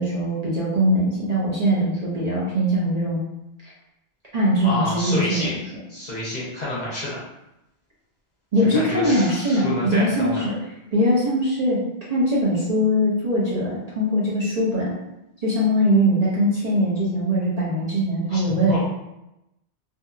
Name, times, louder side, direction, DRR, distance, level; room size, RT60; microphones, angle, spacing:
voice 1, 0.0-3.2 4.3-5.5 8.5-10.5 10.9-11.8 12.1-14.9 15.4-18.8, equal, 45° right, -7 dB, 0.6 m, -21 dB
voice 2, 4.6-5.5 5.9-7.2 8.7-10.4 18.3-18.4 18.7-18.8, left 1 dB, 45° left, -7 dB, 0.8 m, -28 dB
2.6 x 2.6 x 2.3 m, 0.89 s
omnidirectional pair, 1.1 m